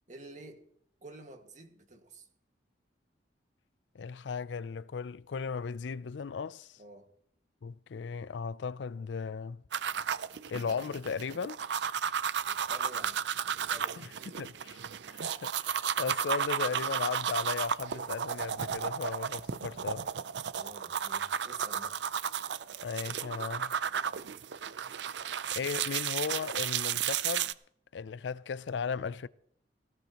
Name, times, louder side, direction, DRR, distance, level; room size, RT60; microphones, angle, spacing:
voice 1, 0.1-0.7 1.0-2.3 6.8-7.1 12.4-14.0 20.5-22.0, right 2 dB, 45° right, 1.9 m, -50 dB
voice 2, 3.9-6.7 7.6-9.6 10.5-11.6 14.0-14.8 15.1-20.1 22.8-23.7 25.5-27.5 27.9-29.3, left 5 dB, 80° left, 0.4 m, -36 dB
sound 1, 9.7-27.5, right 8 dB, 70° right, 0.5 m, -33 dB
18.0 x 17.0 x 3.0 m
head